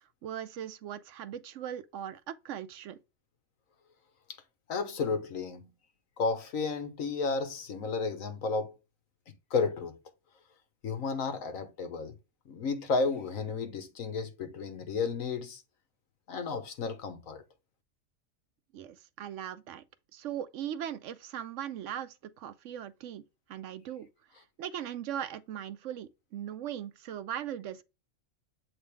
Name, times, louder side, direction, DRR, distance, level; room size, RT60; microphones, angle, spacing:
voice 1, 0.0-3.0 18.7-19.8 20.1-23.2 23.5-24.1 24.3-27.8, right 10 dB, 70° right, 0.9 m, -39 dB
voice 2, 4.7-5.7 6.2-8.7 9.5-10.0 10.8-12.1 12.4-15.6 16.3-17.4, left 4 dB, 85° left, 1.6 m, -32 dB
8.0 x 3.7 x 3.4 m
omnidirectional pair, 1.4 m